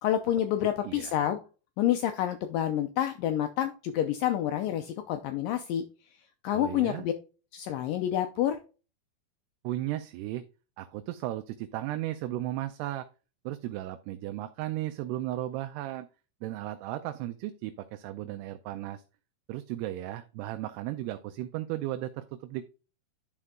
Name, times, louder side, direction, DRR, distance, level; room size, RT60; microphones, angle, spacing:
voice 1, 0.0-1.4 1.8-5.8 6.4-7.1 7.5-8.6, left 11 dB, 85° left, 7 dB, 1.9 m, -28 dB
voice 2, 6.5-7.1 9.6-10.4 10.8-13.1 13.5-16.1 16.4-19.0 19.5-22.7, right 14 dB, 85° right, 8 dB, 2.6 m, -35 dB
11.5 x 4.4 x 3.7 m, 0.33 s
omnidirectional pair, 4.7 m